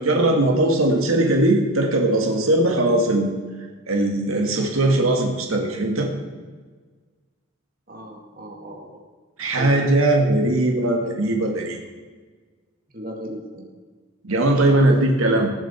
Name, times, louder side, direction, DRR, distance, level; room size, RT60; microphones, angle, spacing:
voice 1, 0.0-3.3 3.9-6.1 9.4-11.8 14.2-15.5, right 1 dB, 90° right, 2 dB, 2.0 m, -19 dB
voice 2, 7.9-9.0 9.6-9.7 10.4-10.5 12.9-13.7 14.5-14.9, equal, 45° right, 0 dB, 2.2 m, -36 dB
20.0 x 7.3 x 4.4 m, 1.4 s
head